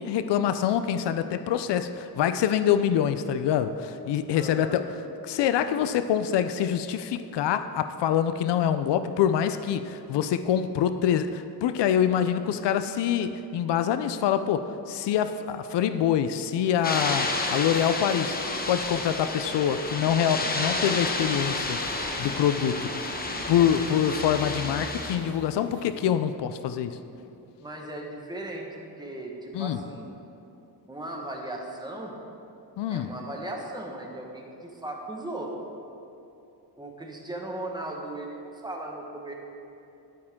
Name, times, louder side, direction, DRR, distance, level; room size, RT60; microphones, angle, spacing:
voice 1, 0.0-4.8 5.2-18.4 18.7-21.8 22.2-22.9 23.5-27.0 29.5-29.8 32.8-33.1, left 9 dB, 80° left, 11 dB, 0.5 m, -25 dB
voice 2, 4.3-4.8 27.6-28.7 29.0-30.1 30.9-32.2 32.9-35.5 36.8-39.3, right 1 dB, 10° right, -1 dB, 1.3 m, -37 dB
sound 1, 16.6-26.1, left 1 dB, 45° left, 1.7 m, -45 dB
sound 2, 16.8-25.2, left 2 dB, 20° left, 0.9 m, -31 dB
11.0 x 9.0 x 3.6 m, 2.8 s
cardioid pair, 115°, 41 cm